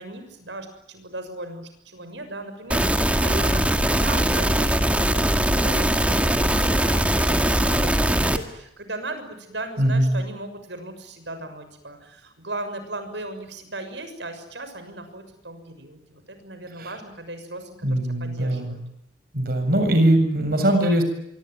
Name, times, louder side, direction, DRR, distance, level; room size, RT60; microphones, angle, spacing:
voice 1, 0.0-18.8, right 2 dB, 80° right, 9 dB, 6.5 m, -37 dB
sound 1, 2.7-8.4, right 1 dB, 5° right, 2.1 m, -21 dB
voice 2, 9.8-10.2 16.8-16.9 17.8-18.8 19.3-21.0, right 1 dB, 55° right, 7 dB, 7.3 m, -21 dB
26.0 x 24.0 x 9.4 m, 0.80 s
head